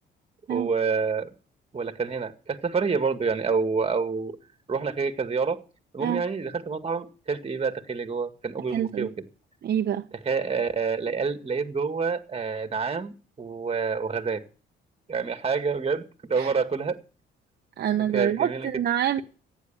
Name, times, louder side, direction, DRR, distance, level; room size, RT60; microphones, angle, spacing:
voice 1, 0.5-1.3 1.7-4.4 4.7-5.6 5.9-9.1 10.2-14.4 15.1-17.0 18.0-18.7, right 5 dB, 30° right, 2.0 m, -28 dB
voice 2, 8.7-9.1 9.6-10.0 16.4-16.5 17.8-19.2, right 10 dB, 55° right, 0.7 m, -26 dB
14.5 x 9.7 x 7.3 m
cardioid pair, 90°, 20 cm